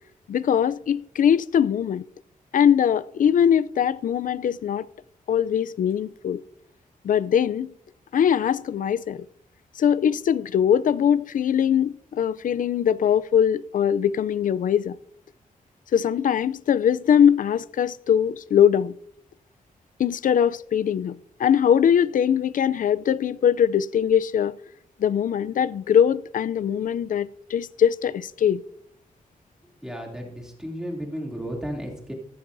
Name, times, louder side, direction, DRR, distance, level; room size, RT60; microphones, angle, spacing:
voice 1, 0.3-2.0 2.5-4.9 5.3-6.4 7.0-7.7 8.1-9.3 9.8-15.0 15.9-18.9 20.0-24.5 25.0-28.6, left 8 dB, 70° left, 0.4 m, -21 dB
voice 2, 29.8-32.1, equal, 5° right, 2.7 m, -33 dB
14.5 x 13.5 x 2.6 m
wide cardioid pair, 135°, 14 cm